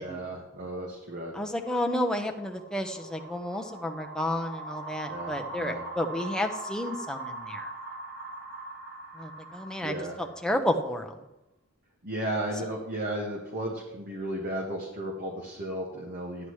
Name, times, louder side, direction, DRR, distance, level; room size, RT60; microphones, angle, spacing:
voice 1, 0.0-1.3 5.1-5.8 9.8-10.2 12.0-16.5, right 1 dB, 45° right, -1 dB, 1.3 m, -34 dB
voice 2, 1.3-7.7 9.2-11.1, left 1 dB, 5° left, 3 dB, 0.8 m, -31 dB
sound 1, 1.5-10.9, right 2 dB, 80° right, 2.9 m, -41 dB
13.0 x 9.9 x 3.2 m, 0.96 s
head